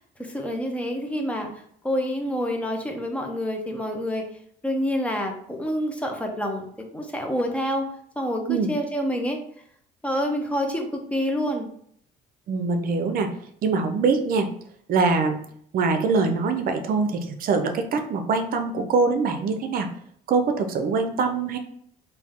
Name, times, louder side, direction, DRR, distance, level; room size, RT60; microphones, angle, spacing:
voice 1, 0.0-4.3 4.6-7.9 8.2-9.4 10.0-11.7, equal, 10° left, 2 dB, 0.7 m, -27 dB
voice 2, 12.5-13.3 13.6-14.5 14.9-15.4 15.7-19.9 20.3-21.6, right 4 dB, 60° right, 7 dB, 0.6 m, -23 dB
3.4 x 2.7 x 3.6 m, 0.65 s
cardioid pair, 110°, 17 cm